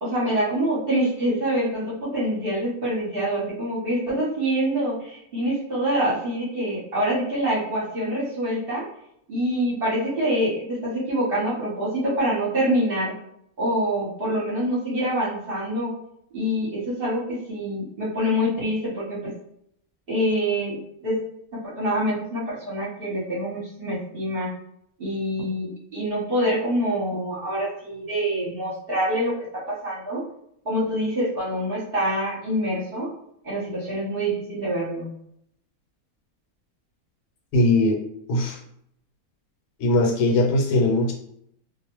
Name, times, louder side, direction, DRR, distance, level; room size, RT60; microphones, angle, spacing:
voice 1, 0.0-8.9 9.3-13.1 13.6-15.9 16.3-19.3 20.1-21.2 21.6-24.5 25.0-30.2 30.6-33.1 33.4-35.1, equal, 45° right, -6 dB, 0.9 m, -25 dB
voice 2, 37.5-38.0 38.3-38.6 39.8-41.1, left 2 dB, 85° left, 1 dB, 1.2 m, -20 dB
2.5 x 2.1 x 2.9 m, 0.71 s
omnidirectional pair, 1.6 m